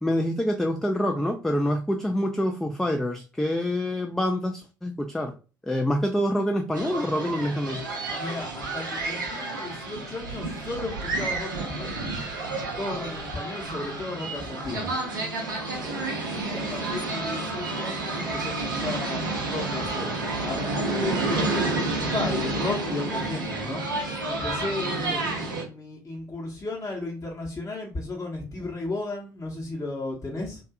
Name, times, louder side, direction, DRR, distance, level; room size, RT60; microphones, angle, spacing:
voice 1, 0.0-5.3 5.6-7.8, equal, 5° left, 0.3 m, -26 dB
sound 1, 6.7-25.6, right 2 dB, 85° right, 0.5 m, -30 dB
voice 2, 8.1-12.2 12.8-14.9 15.8-23.8 24.2-30.6, left 2 dB, 30° left, 0.9 m, -35 dB
2.5 x 2.3 x 2.2 m
figure-of-eight pair, 50°, 10 cm